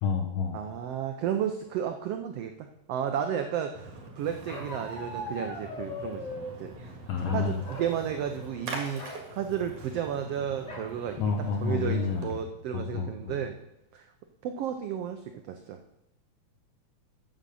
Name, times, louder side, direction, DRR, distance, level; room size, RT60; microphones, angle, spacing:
voice 1, 0.0-0.6 7.1-7.6 11.2-12.3 12.7-13.4, left 5 dB, 70° left, 4 dB, 1.5 m, -29 dB
voice 2, 0.5-6.9 7.3-11.3 11.6-13.6 13.9-14.1 14.4-15.8, right 9 dB, 90° right, 6 dB, 1.3 m, -33 dB
Splash splatter, 3.7-12.4, right 2 dB, 70° right, 3.4 m, -44 dB
Bark, 4.5-6.6 7.2-8.0 8.3-8.5 8.9-9.2 10.7-10.9 11.5-11.6 11.9-12.3, left 1 dB, 55° left, 0.4 m, -40 dB
9.2 x 7.4 x 6.8 m, 0.86 s
omnidirectional pair, 3.7 m